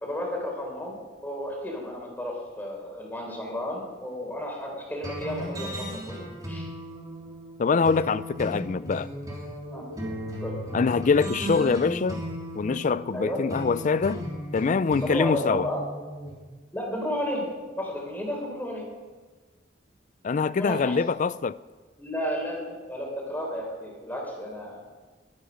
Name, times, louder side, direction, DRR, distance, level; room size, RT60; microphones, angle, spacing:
voice 1, 0.0-6.2 6.5-6.7 9.7-10.6 13.1-13.4 15.0-15.8 16.7-17.5 17.8-18.9 20.6-21.2 22.0-24.8, equal, 10° left, 3.8 m, -33 dB
sound 1, 5.0-16.3, equal, 20° right, 3.1 m, -36 dB
voice 2, 7.6-9.1 10.7-12.2 12.6-14.2 14.5-15.7 20.2-21.6, left 5 dB, 40° left, 0.4 m, -24 dB
22.0 x 9.1 x 5.3 m
head